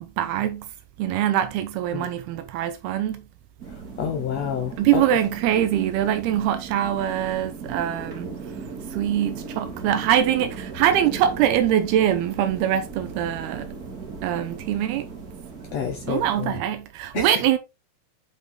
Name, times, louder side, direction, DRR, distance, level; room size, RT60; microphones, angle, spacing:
voice 1, 0.0-0.7 1.0-3.3 4.8-8.4 8.9-13.8 14.2-15.1 16.1-17.6, right 11 dB, 80° right, 2.7 m, -23 dB
sound 1, 3.6-16.5, right 4 dB, 30° right, 1.8 m, -38 dB
voice 2, 4.0-5.0 15.7-16.6 17.1-17.3, left 8 dB, 80° left, 1.5 m, -29 dB
9.1 x 5.5 x 3.6 m
omnidirectional pair, 4.7 m